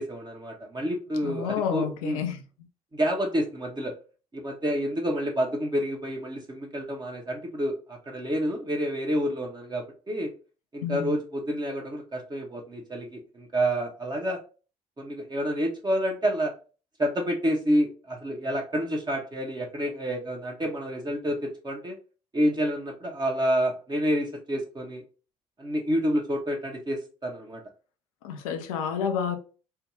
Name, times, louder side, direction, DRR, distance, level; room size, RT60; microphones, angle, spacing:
voice 1, 0.0-2.2 2.9-3.9 4.3-10.3 10.7-14.4 15.0-16.5 17.0-22.0 22.3-25.0 25.6-27.6, equal, 25° right, 0.9 m, -28 dB
voice 2, 1.2-2.4 10.8-11.2 28.2-29.4, left 7 dB, 75° left, 0.5 m, -29 dB
3.3 x 2.2 x 3.0 m
figure-of-eight pair, 50°, 18 cm